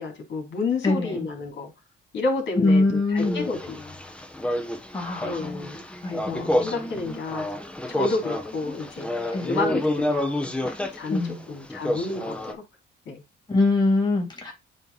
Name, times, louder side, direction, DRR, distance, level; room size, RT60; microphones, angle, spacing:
voice 1, 0.0-1.7 2.1-3.9 5.2-5.8 6.1-7.5 7.9-11.2 11.5-12.6 13.1-13.2, left 3 dB, 65° left, 3.4 m, -30 dB
voice 2, 0.8-1.3 2.6-3.5 4.9-5.7 6.0-6.7 9.3-9.7 11.1-11.4 13.5-14.5, left 2 dB, 20° left, 3.1 m, -24 dB
sound 1, 3.2-12.5, left 1 dB, 5° left, 1.1 m, -30 dB
9.0 x 3.3 x 4.0 m
cardioid pair, 90°, 20 cm